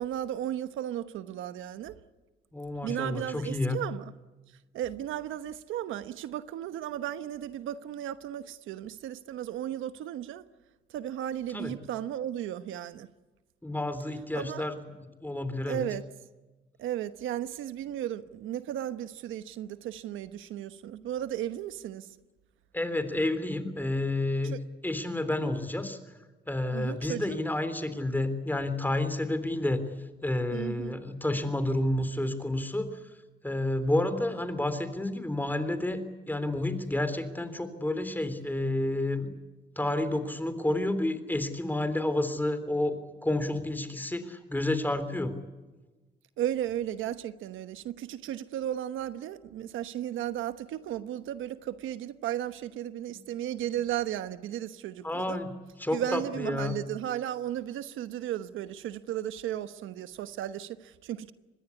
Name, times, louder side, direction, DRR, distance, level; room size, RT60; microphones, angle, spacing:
voice 1, 0.0-2.0 2.8-4.1 4.7-10.4 10.9-13.1 14.3-14.7 15.7-16.1 16.8-22.2 24.4-24.6 26.7-27.4 30.5-31.0 46.4-55.4 55.9-61.3, right 11 dB, 85° right, 1.1 m, -35 dB
voice 2, 2.5-3.8 11.5-11.7 13.6-14.8 15.2-15.8 22.7-24.5 24.8-26.0 26.5-29.8 30.2-33.0 33.4-39.3 39.8-45.3 53.1-53.2 55.0-55.5 55.8-56.7, left 1 dB, 10° left, 3.5 m, -30 dB
25.0 x 20.5 x 8.4 m
cardioid pair, 90°, 20 cm